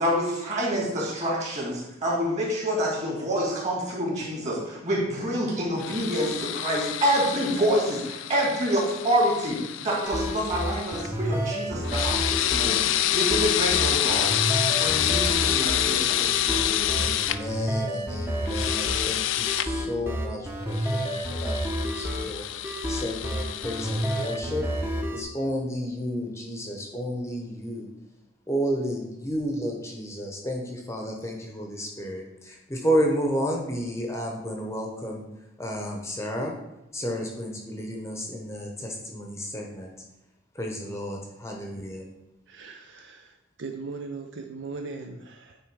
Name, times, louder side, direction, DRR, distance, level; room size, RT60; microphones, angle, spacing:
voice 1, 0.0-14.3 14.8-17.0, equal, 35° right, -3 dB, 2.5 m, -27 dB
sound 1, 5.8-11.1 11.8-17.4 18.5-19.7 20.7-24.4, left 12 dB, 70° left, 0.3 m, -27 dB
sound 2, 10.0-25.2, equal, 10° right, 0.8 m, -30 dB
voice 2, 17.0-24.7 25.1-27.9 28.5-35.2 35.6-36.5 36.9-39.9 40.5-42.1, equal, 15° left, 1 dB, 0.8 m, -31 dB
voice 3, 42.5-45.6, right 4 dB, 65° right, 5 dB, 0.5 m, -39 dB
9.2 x 3.4 x 4.7 m, 0.95 s
head